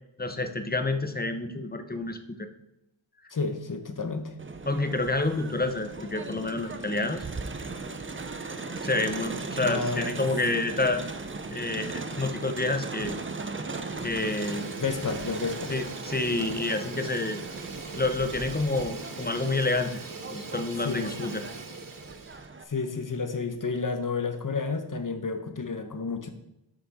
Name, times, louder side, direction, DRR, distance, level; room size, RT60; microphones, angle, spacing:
voice 1, 0.2-2.5 4.7-7.2 8.8-11.0 11.5-13.2 14.0-14.7 15.7-17.4 18.0-20.0 20.3-21.4, left 2 dB, 20° left, 8 dB, 0.7 m, -28 dB
voice 2, 3.3-4.3 9.6-10.1 14.8-15.8 20.8-21.3 22.7-26.3, left 4 dB, 40° left, 7 dB, 1.0 m, -31 dB
Crowd, 4.4-22.6, right 3 dB, 25° right, 0.6 m, -38 dB
Fire, 12.9-13.4 13.7-22.5, right 4 dB, 45° right, 0.9 m, -41 dB
8.0 x 5.9 x 4.2 m, 0.90 s
wide cardioid pair, 65°, 48 cm